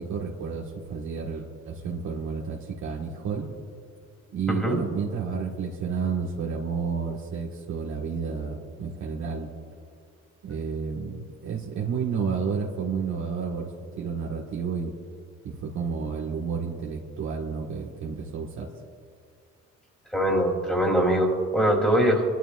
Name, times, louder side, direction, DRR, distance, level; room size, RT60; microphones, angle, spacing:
voice 1, 0.0-3.5 4.3-9.5 10.4-13.7 14.0-14.9 15.4-18.7, right 5 dB, 75° right, -3 dB, 1.7 m, -31 dB
voice 2, 4.5-4.8 20.1-22.2, equal, 5° left, 0 dB, 3.2 m, -22 dB
30.0 x 12.0 x 2.5 m, 2.2 s
cardioid pair, 90°, 30 cm